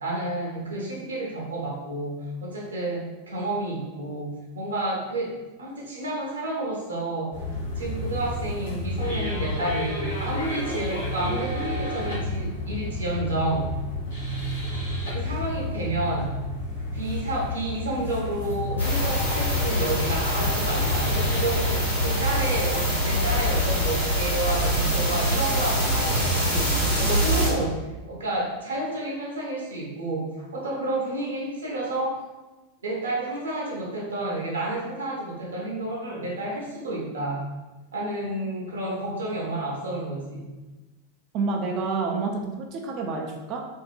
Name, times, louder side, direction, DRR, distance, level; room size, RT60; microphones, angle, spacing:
voice 1, 0.0-7.4 7.8-13.7 15.0-16.3 16.9-27.8 28.1-32.2 32.8-37.5 37.9-40.5, right 1 dB, 70° right, -3 dB, 0.8 m, -30 dB
sound 1, 7.3-23.9, left 1 dB, 70° left, 0.9 m, -31 dB
sound 2, 18.8-27.5, equal, 90° left, 1.2 m, -24 dB
voice 2, 41.3-43.7, right 4 dB, 40° right, 2 dB, 0.3 m, -28 dB
2.6 x 2.5 x 2.4 m, 1.1 s
figure-of-eight pair, 90°, 0 cm